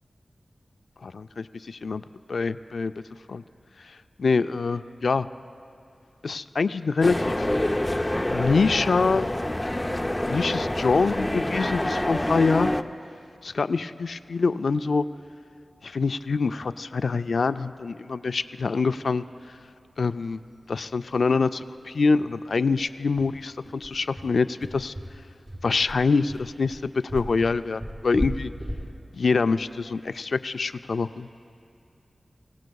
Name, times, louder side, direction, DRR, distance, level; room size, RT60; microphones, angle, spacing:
voice 1, 1.0-2.0 2.3-2.9 3.3-3.4 4.2-5.3 6.2-7.5 8.3-9.3 10.3-12.7 13.4-15.0 15.8-19.2 20.0-20.4 20.7-24.9 25.6-28.5 29.2-31.3, left 4 dB, 80° left, 12 dB, 0.3 m, -25 dB
sound 1, 7.0-12.8, left 1 dB, 15° left, 0.5 m, -26 dB
sound 2, 20.3-20.4 20.7-20.8 21.1-21.3 21.6-21.7 22.2-30.6, equal, 25° right, 2.5 m, -37 dB
25.0 x 17.5 x 2.3 m, 2.5 s
wide cardioid pair, 75°, 0 cm